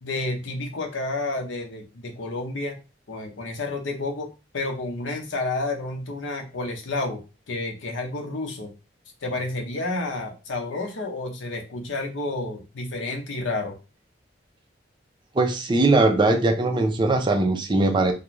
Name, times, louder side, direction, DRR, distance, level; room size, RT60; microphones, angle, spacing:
voice 1, 0.0-2.8 3.1-7.2 7.5-8.7 9.2-13.8, left 2 dB, 80° left, 2 dB, 0.7 m, -30 dB
voice 2, 15.3-18.1, right 2 dB, 25° right, 5 dB, 0.4 m, -20 dB
2.5 x 2.2 x 3.0 m, 0.30 s
head